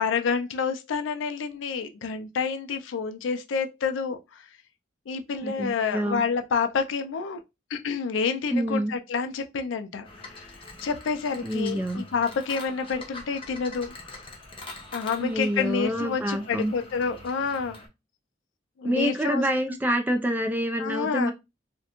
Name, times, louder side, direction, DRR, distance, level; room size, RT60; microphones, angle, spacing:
voice 1, 0.0-4.5 5.1-7.4 7.7-13.9 14.9-17.8 18.8-19.4 20.8-21.3, left 5 dB, 80° left, 0.4 m, -28 dB
voice 2, 5.4-6.2 8.5-8.9 11.4-12.0 15.2-16.7 18.8-21.3, equal, 10° right, 0.3 m, -27 dB
sound 1, 10.0-17.9, left 2 dB, 30° left, 0.6 m, -44 dB
2.4 x 2.1 x 2.8 m
head